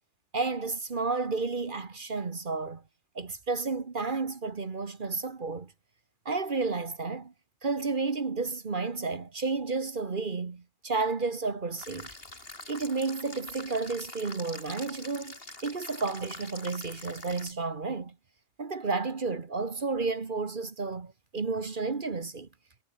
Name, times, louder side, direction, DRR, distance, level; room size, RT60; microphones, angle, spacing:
voice 1, 0.3-2.8 3.1-5.7 6.2-7.3 7.6-12.1 12.7-18.1 18.6-22.5, right 4 dB, 45° right, 1.5 m, -32 dB
sound 1, 11.8-17.5, left 2 dB, 55° left, 4.3 m, -45 dB
omnidirectional pair, 1.2 m